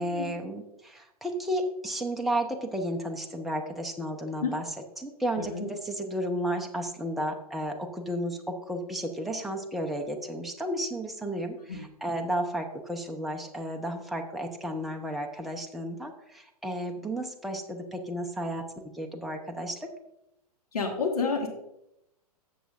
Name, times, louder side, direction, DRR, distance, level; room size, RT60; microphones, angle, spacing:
voice 1, 0.0-4.6 5.0-18.6 18.9-19.8, equal, ahead, 1 dB, 0.8 m, -33 dB
voice 2, 5.4-5.7 11.7-11.8 20.7-21.5, left 4 dB, 70° left, 1 dB, 1.8 m, -30 dB
13.0 x 7.5 x 2.6 m, 0.83 s
figure-of-eight pair, 110°, 20 cm